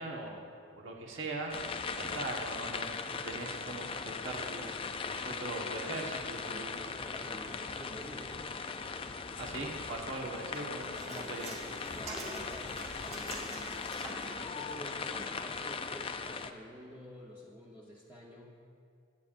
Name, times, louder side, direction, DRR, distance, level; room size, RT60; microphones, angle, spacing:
voice 1, 0.0-1.7 2.0-4.8 5.1-6.8 9.4-11.5, right 2 dB, 55° right, -1 dB, 1.3 m, -41 dB
sound 1, 1.5-16.5, left 5 dB, 25° left, 0.3 m, -39 dB
voice 2, 6.3-8.6 10.7-11.6 11.9-13.6 14.3-18.6, equal, 10° right, -6 dB, 0.9 m, -50 dB
sound 2, 10.5-14.4 15.1-15.2, right 2 dB, 30° right, 2.2 m, -45 dB
21.5 x 8.8 x 2.6 m, 2.4 s
head